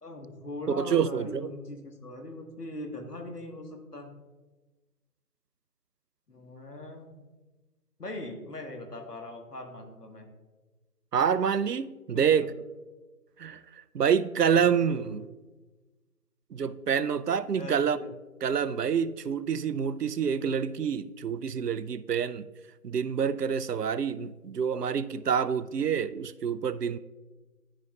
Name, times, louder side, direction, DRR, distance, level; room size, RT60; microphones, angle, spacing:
voice 1, 0.0-4.1 6.3-7.1 8.0-10.3 12.1-12.5 14.5-15.3 17.5-18.1, left 1 dB, 80° left, 1.7 m, -40 dB
voice 2, 0.8-1.5 11.1-12.5 13.4-13.6 13.9-15.2 16.5-18.0 18.4-22.5 22.8-27.0, right 7 dB, 85° right, 0.5 m, -27 dB
12.5 x 4.8 x 2.4 m
figure-of-eight pair, 175°, 47 cm